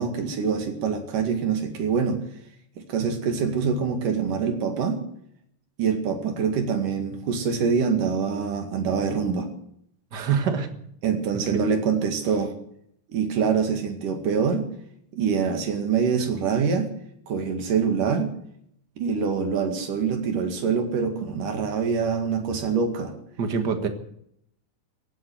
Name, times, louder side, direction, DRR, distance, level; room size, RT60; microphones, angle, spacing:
voice 1, 0.0-2.2 2.9-5.0 5.8-9.5 11.0-12.5 13.1-14.7 15.1-16.9 17.3-18.3 19.0-23.2, right 6 dB, 70° right, 5 dB, 3.6 m, -25 dB
voice 2, 10.1-10.7 11.5-11.6 23.4-23.9, right 6 dB, 40° right, 7 dB, 1.6 m, -25 dB
17.0 x 8.7 x 9.3 m, 0.70 s
omnidirectional pair, 3.9 m